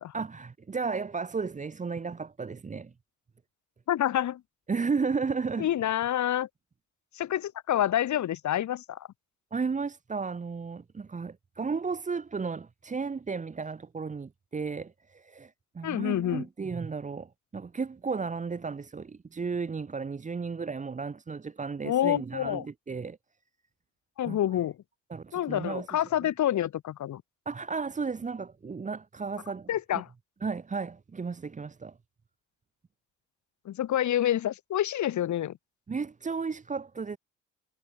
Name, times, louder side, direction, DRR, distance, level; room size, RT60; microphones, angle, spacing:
voice 1, 0.1-2.9 4.7-5.7 9.5-23.2 24.3-24.4 25.1-25.9 27.5-30.0 30.4-32.0 35.9-37.2, right 5 dB, 25° right, 1.0 m, -34 dB
voice 2, 3.9-4.4 5.6-6.5 7.1-9.1 15.8-16.4 21.8-22.6 24.2-24.8 25.3-27.2 29.7-30.1 33.6-35.6, left 11 dB, 70° left, 2.9 m, -28 dB
cardioid pair, 90°, 30 cm